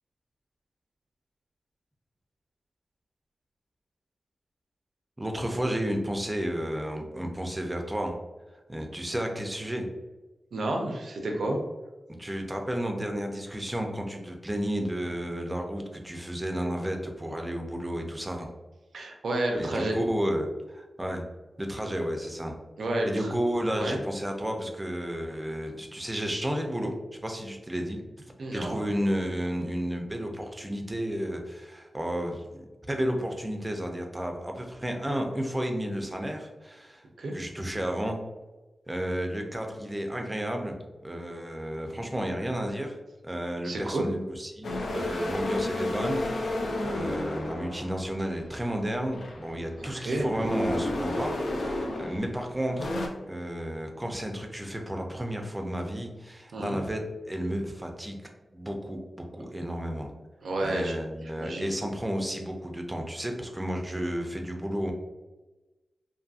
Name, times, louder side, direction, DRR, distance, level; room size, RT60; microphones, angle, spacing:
voice 1, 5.2-8.2 8.7-9.9 12.2-18.5 19.6-21.2 21.6-22.5 23.1-26.9 27.2-37.1 37.3-38.2 38.9-40.7 41.0-43.0 43.2-53.0 53.3-58.2 58.5-60.1 60.6-64.9, equal, 15° right, 3 dB, 0.4 m, -32 dB
voice 2, 10.5-11.6 18.9-20.0 22.8-23.3 23.8-24.0 28.4-28.8 37.2-37.3 43.6-44.1 49.8-50.3 56.5-56.8 60.4-60.9 61.4-61.7, right 1 dB, 85° right, 1 dB, 0.5 m, -30 dB
sound 1, 44.6-48.5 49.0-52.4 52.7-53.1, left 1 dB, 85° left, 0.4 m, -32 dB
2.6 x 2.5 x 2.4 m, 1.1 s
wide cardioid pair, 110°, 0 cm